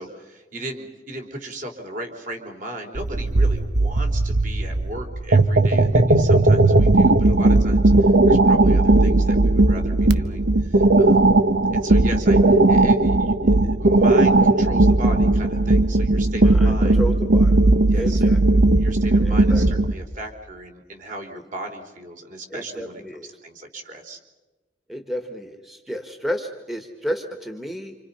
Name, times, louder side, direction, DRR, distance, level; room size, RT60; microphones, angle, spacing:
voice 1, 0.0-11.4 11.7-17.0 17.9-18.3 18.8-23.0 23.4-24.2, right 1 dB, 45° right, 3 dB, 3.9 m, -36 dB
sound 1, 3.0-19.9, right 2 dB, 65° right, 1.1 m, -17 dB
voice 2, 16.4-17.6 17.9-18.6 19.2-19.6 21.3-21.4 22.5-23.3 24.9-27.9, equal, ahead, 4 dB, 1.6 m, -32 dB
28.5 x 27.0 x 5.7 m, 1.2 s
head